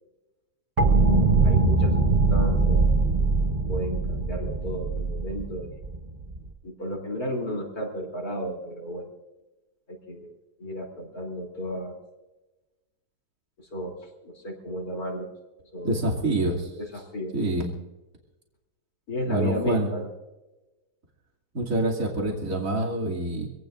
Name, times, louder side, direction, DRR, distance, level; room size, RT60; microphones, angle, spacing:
sound 1, 0.8-6.5, right 3 dB, 30° right, 1.0 m, -22 dB
voice 1, 1.4-2.9 3.4-5.7 6.6-9.1 9.9-10.3 10.6-11.9 13.6-14.0 14.2-15.3 15.7-16.0 16.7-17.3 19.1-20.1, equal, 65° left, 0 dB, 3.8 m, -33 dB
voice 2, 15.8-16.7 17.3-17.7 19.3-19.9 21.5-23.5, right 1 dB, 55° right, -3 dB, 3.0 m, -26 dB
26.0 x 17.5 x 2.6 m, 1.1 s
omnidirectional pair, 1.7 m